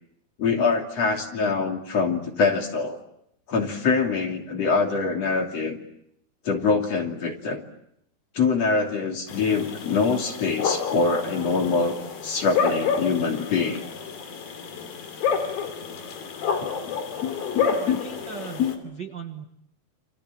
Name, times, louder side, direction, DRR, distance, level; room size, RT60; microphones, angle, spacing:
voice 1, 0.4-3.0 3.5-5.8 6.5-7.6 8.4-12.0 12.2-13.8 16.6-18.0 18.6-18.7, left 4 dB, 45° left, 3 dB, 3.7 m, -24 dB
sound 1, 9.3-18.8, left 6 dB, 70° left, 4.7 m, -29 dB
voice 2, 17.8-19.5, right 6 dB, 50° right, 5 dB, 1.2 m, -38 dB
29.0 x 27.0 x 7.4 m, 0.74 s
omnidirectional pair, 4.3 m